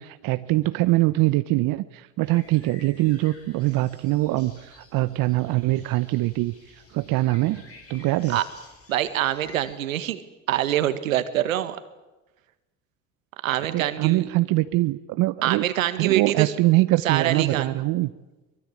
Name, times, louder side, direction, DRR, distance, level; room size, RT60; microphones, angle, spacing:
voice 1, 0.0-7.6 7.9-8.4 13.7-15.6 16.0-18.1, right 18 dB, 55° right, 12 dB, 1.0 m, -23 dB
sound 1, 2.2-9.8, left 3 dB, 35° left, 5.6 m, -51 dB
voice 2, 8.9-10.2 10.5-11.8 13.4-14.3 15.4-16.5 17.0-17.7, right 12 dB, 85° right, 12 dB, 1.8 m, -25 dB
23.5 x 22.0 x 8.7 m, 1.1 s
hypercardioid pair, 65°, 39 cm